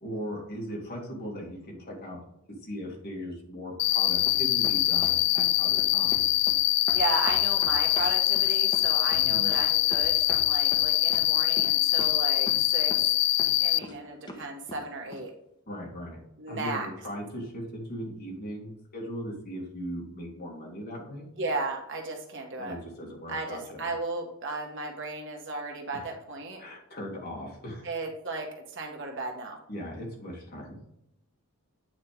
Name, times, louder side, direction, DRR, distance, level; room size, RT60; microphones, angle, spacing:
voice 1, 0.0-2.2 2.7-6.1 9.1-9.5 15.7-16.2 16.5-21.3 22.6-23.9 25.9-26.1 26.6-27.9 29.7-30.8, equal, 45° left, -2 dB, 2.4 m, -38 dB
Cricket, 3.8-13.8, left 16 dB, 90° left, 0.3 m, -24 dB
sound 1, 4.3-5.5 5.8-6.6 6.9-10.4 10.7-11.2 11.6-11.7 12.0-12.1 12.5-12.6 12.9-13.1 13.4-13.9 14.3-14.8 15.1-15.2, left 1 dB, 20° left, 0.9 m, -41 dB
voice 2, 6.9-13.0 13.6-15.3 16.4-16.9 21.4-22.8 23.3-26.6 27.8-29.6, right 3 dB, 55° right, 2 dB, 1.5 m, -35 dB
8.7 x 4.3 x 3.5 m, 0.78 s
head